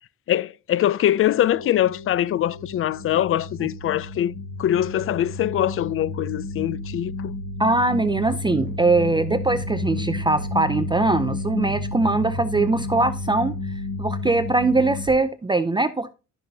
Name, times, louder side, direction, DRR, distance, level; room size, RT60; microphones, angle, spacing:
voice 1, 0.3-7.3, left 12 dB, 45° left, 0.4 m, -23 dB
sound 1, 1.0-15.1, left 3 dB, 70° left, 1.5 m, -31 dB
voice 2, 7.6-13.5 14.0-16.1, right 3 dB, 15° right, 0.4 m, -21 dB
sound 2, 8.1-13.2, equal, 10° left, 4.7 m, -44 dB
12.0 x 5.5 x 2.7 m
cardioid pair, 90°, 30 cm